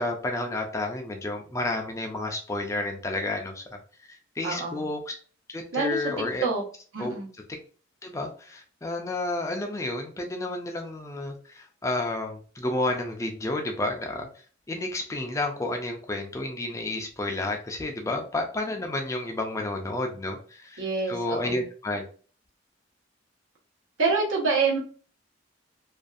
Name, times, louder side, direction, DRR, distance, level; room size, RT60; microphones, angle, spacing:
voice 1, 0.0-3.8 4.1-5.2 5.5-6.5 7.0-7.1 7.5-7.6 8.0-14.3 14.7-20.8 21.1-22.0, left 2 dB, 15° left, 3 dB, 0.3 m, -31 dB
voice 2, 4.4-4.8 5.7-6.6 6.9-7.3 20.8-21.6 24.0-24.8, right 4 dB, 85° right, -3 dB, 1.0 m, -27 dB
2.5 x 2.3 x 2.3 m, 0.42 s
head